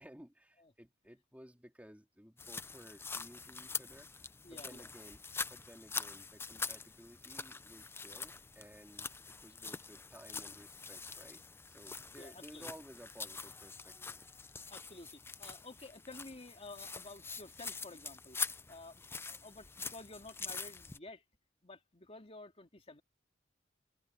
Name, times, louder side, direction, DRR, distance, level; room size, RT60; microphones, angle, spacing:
voice 1, 0.0-4.1 4.5-11.4 11.7-14.2, equal, 10° right, 2.6 m, -56 dB
sound 1, 2.4-21.0, left 4 dB, 10° left, 0.5 m, -44 dB
voice 2, 4.4-4.9 12.2-12.7 14.7-18.4 18.7-21.2 21.6-23.0, left 2 dB, 30° left, 3.1 m, -52 dB
head